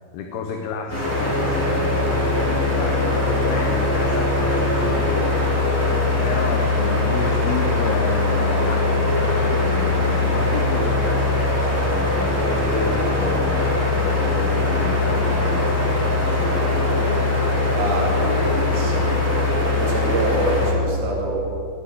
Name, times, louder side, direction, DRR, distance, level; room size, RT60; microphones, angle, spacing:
voice 1, 0.1-5.7 6.2-17.0, left 5 dB, 75° left, 3 dB, 2.9 m, -31 dB
sound 1, 0.9-20.7, left 2 dB, 5° left, 3.8 m, -21 dB
voice 2, 17.7-19.2 19.7-21.4, right 1 dB, 65° right, -2 dB, 4.1 m, -26 dB
20.5 x 8.1 x 8.4 m, 2.5 s
omnidirectional pair, 5.0 m